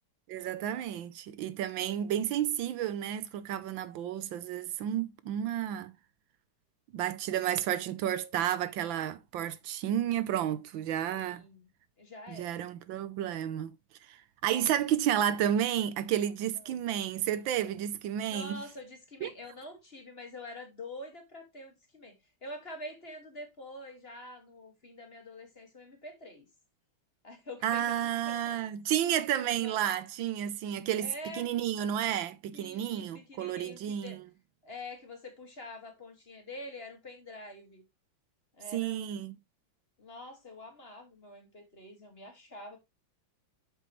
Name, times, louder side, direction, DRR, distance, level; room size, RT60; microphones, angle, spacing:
voice 1, 0.3-5.9 6.9-11.4 12.3-13.7 14.0-18.6 19.2-19.3 27.6-34.2 38.7-39.3, right 10 dB, 80° right, 1.4 m, -31 dB
voice 2, 11.0-11.7 12.0-12.7 16.6-16.8 18.3-22.1 22.4-26.5 27.2-28.7 29.6-29.8 31.0-31.5 32.5-34.2 34.6-37.8 38.6-39.1 40.0-42.8, left 1 dB, 30° left, 2.0 m, -46 dB
8.5 x 6.9 x 3.1 m
omnidirectional pair, 2.2 m